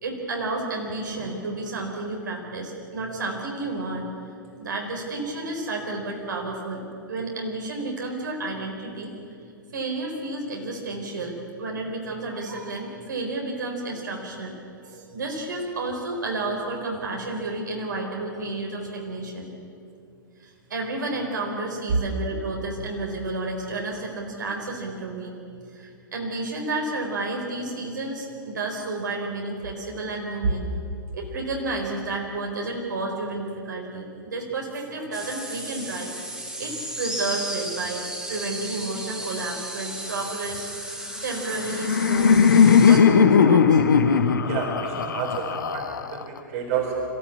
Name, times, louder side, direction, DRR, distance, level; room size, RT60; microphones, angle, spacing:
voice 1, 0.0-4.1 4.6-6.8 7.1-9.1 9.7-14.5 14.8-19.5 20.4-25.4 25.7-30.7 31.1-36.3 36.6-41.0 41.2-43.8, right 2 dB, 65° right, 0 dB, 4.5 m, -31 dB
sound 1, 35.1-43.0, right 1 dB, 5° right, 2.7 m, -34 dB
Laughter, 41.3-46.4, left 6 dB, 65° left, 1.4 m, -18 dB
voice 2, 44.4-47.0, right 7 dB, 50° right, 1 dB, 4.2 m, -30 dB
26.0 x 14.5 x 8.6 m, 2.5 s
figure-of-eight pair, 105°, 11 cm